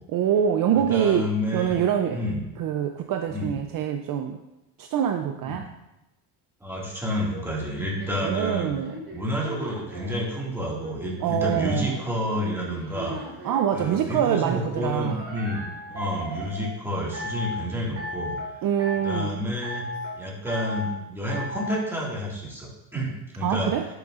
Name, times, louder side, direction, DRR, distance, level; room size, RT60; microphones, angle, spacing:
voice 1, 0.1-1.3 1.5-2.2 2.6-4.4 4.8-5.7 8.2-9.0 11.2-12.0 13.4-15.2 18.6-19.4 23.4-23.9, right 9 dB, 50° right, 6 dB, 0.5 m, -25 dB
voice 2, 0.7-1.8 2.1-2.4 3.3-3.6 5.4-5.6 6.6-8.7 9.1-13.2 13.7-18.4 19.0-19.8 20.2-23.7, equal, 5° right, -4 dB, 1.9 m, -29 dB
sound 1, 7.3-10.2 10.8-13.7 15.0-16.7 17.1-17.6 18.0-18.5 18.8-19.3 19.6-20.2 20.5-20.9 21.3-21.8, left 1 dB, 30° right, 2.3 m, -36 dB
10.0 x 6.9 x 2.5 m, 0.97 s
cardioid pair, 135°, 44 cm